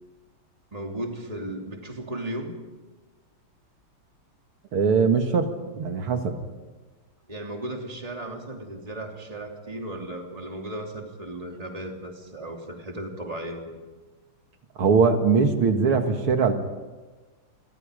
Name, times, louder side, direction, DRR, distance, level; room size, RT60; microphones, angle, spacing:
voice 1, 0.7-2.6 7.3-13.8, right 1 dB, 15° right, 2 dB, 3.0 m, -35 dB
voice 2, 4.7-6.4 14.8-16.5, right 5 dB, 85° right, 5 dB, 2.8 m, -21 dB
29.0 x 24.0 x 5.2 m, 1.3 s
omnidirectional pair, 2.3 m